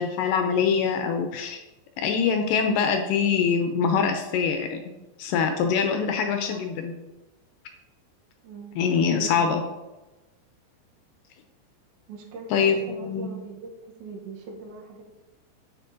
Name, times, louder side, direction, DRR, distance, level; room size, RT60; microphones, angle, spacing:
voice 1, 0.0-1.6 2.0-4.8 5.2-6.9 8.8-9.6 12.5-13.3, left 6 dB, 80° left, 5 dB, 2.0 m, -24 dB
voice 2, 9.1-9.5 12.1-13.7 14.0-15.0, right 3 dB, 80° right, 1 dB, 2.9 m, -40 dB
7.9 x 6.7 x 2.6 m, 1.1 s
omnidirectional pair, 4.2 m